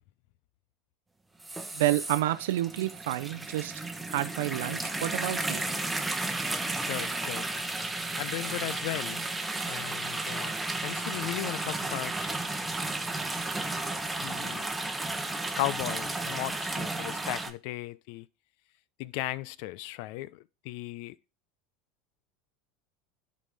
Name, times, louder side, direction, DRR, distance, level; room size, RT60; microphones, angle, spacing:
sound 1, 1.4-17.5, right 2 dB, 10° right, 1.0 m, -33 dB
voice 1, 1.7-3.8 4.1-5.6, right 15 dB, 80° right, 0.5 m, -29 dB
voice 2, 6.9-7.6 8.1-9.3 9.6-10.5 10.8-12.3 14.2-14.7 15.6-18.3 19.0-21.2, left 17 dB, 65° left, 0.4 m, -36 dB
11.0 x 4.2 x 3.5 m
hypercardioid pair, 95°, 0 cm